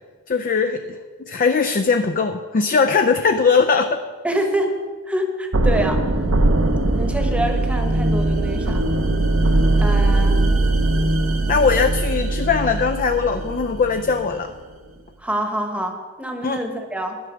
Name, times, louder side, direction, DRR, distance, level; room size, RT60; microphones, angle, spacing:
voice 1, 0.3-4.0 10.1-10.2 11.5-14.5 16.4-16.6, left 5 dB, 40° left, 7 dB, 0.4 m, -20 dB
voice 2, 4.2-4.8 5.1-6.0 6.9-8.8 9.8-10.4 15.2-17.2, right 1 dB, 5° right, 4 dB, 1.0 m, -26 dB
sound 1, 5.5-14.4, right 2 dB, 70° right, 0.8 m, -20 dB
11.0 x 5.8 x 6.1 m, 1.5 s
head